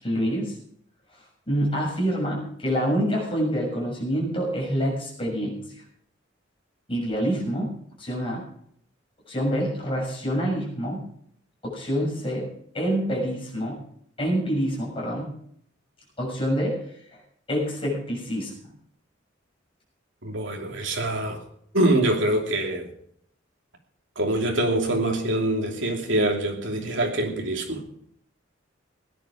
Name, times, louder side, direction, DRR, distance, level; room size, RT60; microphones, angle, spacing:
voice 1, 0.0-0.5 1.5-5.7 6.9-8.5 9.3-11.0 11.6-12.5 12.7-13.8 14.2-15.3 16.2-16.8 17.1-17.2 17.5-18.5, equal, 30° left, -2 dB, 6.7 m, -26 dB
voice 2, 20.2-21.4 21.7-22.9 24.2-27.9, right 1 dB, 70° right, 2 dB, 2.9 m, -24 dB
17.0 x 10.5 x 5.0 m, 0.68 s
head